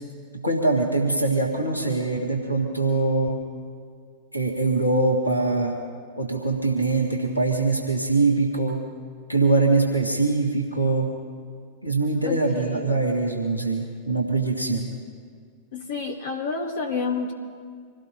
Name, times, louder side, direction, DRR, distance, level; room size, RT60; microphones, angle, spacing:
voice 1, 0.4-3.4 4.3-5.7 6.2-8.8 9.3-11.1 11.8-14.9, right 3 dB, 85° left, 1 dB, 1.8 m, -23 dB
voice 2, 12.2-13.0 15.7-17.3, left 4 dB, 55° left, 2 dB, 2.3 m, -29 dB
26.5 x 17.0 x 2.8 m, 2.1 s
figure-of-eight pair, 90°, 0 cm